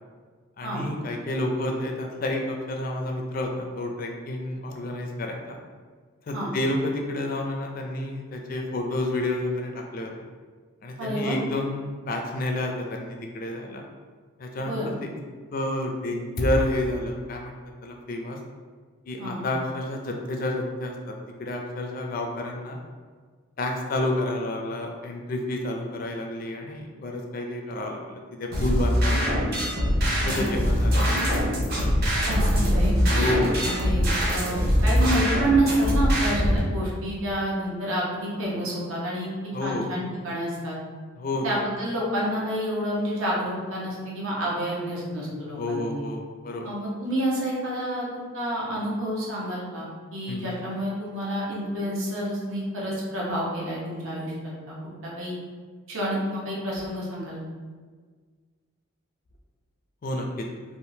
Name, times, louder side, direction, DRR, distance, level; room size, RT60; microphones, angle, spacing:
voice 1, 0.6-5.6 6.3-10.1 10.8-13.9 14.4-15.1 15.5-18.4 19.1-22.8 23.6-29.4 30.2-31.1 33.1-33.5 39.5-39.9 41.2-41.5 45.6-46.7 50.3-50.5 60.0-60.5, left 1 dB, 40° left, 2 dB, 0.4 m, -30 dB
voice 2, 11.0-11.4 14.6-14.9 19.2-19.4 30.2-30.5 32.3-33.4 33.6-39.3 39.6-40.8 41.4-46.0 46.6-54.8 55.0-55.4 55.9-57.4, right 1 dB, 75° right, -5 dB, 0.9 m, -29 dB
sound 1, 28.5-36.6, equal, 45° right, 0.7 m, -23 dB
3.5 x 2.5 x 2.7 m, 1.6 s
head